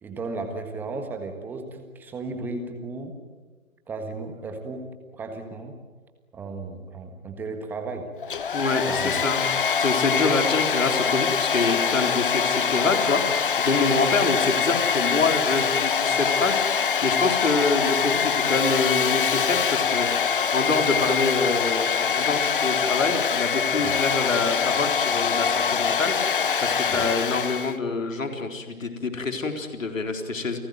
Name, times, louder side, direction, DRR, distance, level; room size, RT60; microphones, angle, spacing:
voice 1, 0.0-3.2 3.9-5.8 6.3-8.1 8.8-9.3 23.8-24.0 26.9-27.1, right 3 dB, 5° right, 5 dB, 1.5 m, -35 dB
Domestic sounds home sounds, 8.2-27.8, left 6 dB, 40° left, 1.0 m, -24 dB
voice 2, 8.5-9.4 9.8-30.6, left 3 dB, 65° left, 5 dB, 4.1 m, -26 dB
29.5 x 18.0 x 9.4 m, 1.3 s
figure-of-eight pair, 150°, 43 cm